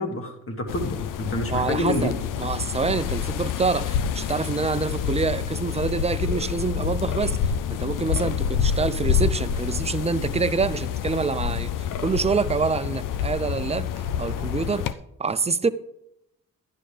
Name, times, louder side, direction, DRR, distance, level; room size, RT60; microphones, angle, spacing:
voice 1, 0.0-2.1, left 1 dB, 45° left, 1.8 m, -28 dB
sound 1, 0.7-14.9, left 8 dB, 75° left, 0.6 m, -27 dB
voice 2, 1.5-11.7 12.0-14.8 15.2-15.7, right 4 dB, 20° right, 0.5 m, -26 dB
11.0 x 10.5 x 3.3 m
supercardioid pair, 50°, 32 cm